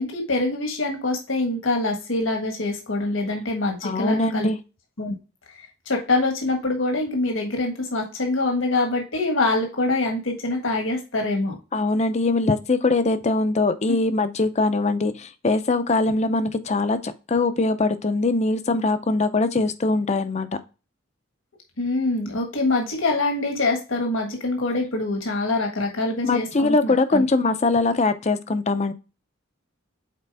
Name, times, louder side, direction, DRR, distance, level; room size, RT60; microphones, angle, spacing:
voice 1, 0.0-4.5 5.0-5.1 5.9-11.6 21.8-27.2, left 2 dB, 75° left, 1.5 m, -24 dB
voice 2, 3.8-4.6 11.7-20.5 26.2-28.9, left 3 dB, 35° left, 0.6 m, -22 dB
6.6 x 4.4 x 3.4 m
head